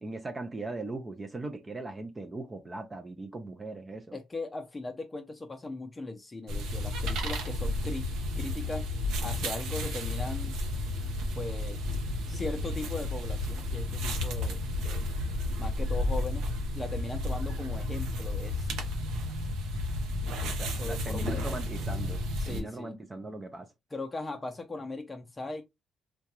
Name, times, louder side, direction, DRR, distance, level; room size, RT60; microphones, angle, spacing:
voice 1, 0.0-4.2 20.4-23.7, right 2 dB, 25° right, 0.5 m, -39 dB
voice 2, 4.1-8.1 8.4-8.9 9.2-10.5 11.4-11.8 12.3-15.1 15.6-16.5 16.7-18.8 20.8-21.6 22.4-22.9 23.9-25.6, left 2 dB, 20° left, 0.5 m, -38 dB
sound 1, 6.5-22.6, left 1 dB, 90° right, 0.8 m, -32 dB
3.6 x 2.2 x 2.9 m
cardioid pair, 90°, 0 cm